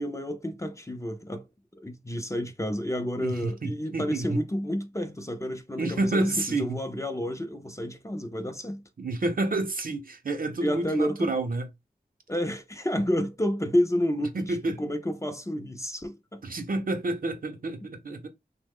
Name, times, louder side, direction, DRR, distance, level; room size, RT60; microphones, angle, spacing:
voice 1, 0.0-1.4 1.8-8.8 10.6-11.3 12.3-16.4, equal, 20° left, 0.5 m, -30 dB
voice 2, 3.2-4.4 5.8-6.8 9.0-11.7 14.3-14.8 16.4-18.3, right 2 dB, 60° right, 0.6 m, -29 dB
2.9 x 2.1 x 3.5 m
wide cardioid pair, 70°, 16 cm